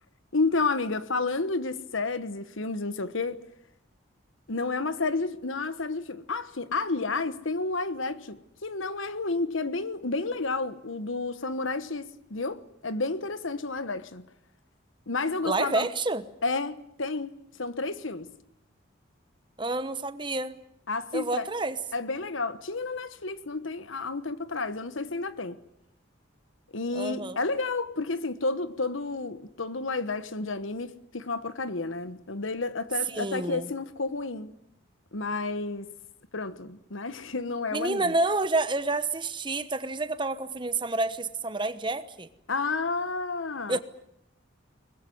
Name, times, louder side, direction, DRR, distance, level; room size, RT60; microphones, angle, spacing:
voice 1, 0.3-3.4 4.5-14.3 15.1-15.9 16.4-17.3 17.6-18.3 20.9-21.5 21.9-25.6 26.7-34.5 35.1-35.9 36.3-38.1 42.5-43.8, left 3 dB, 80° left, 1.3 m, -31 dB
voice 2, 15.4-16.2 19.6-20.6 21.1-21.8 26.9-27.4 33.1-33.7 37.7-42.3 43.7-43.8, right 2 dB, 25° right, 1.1 m, -29 dB
23.0 x 20.0 x 9.5 m
head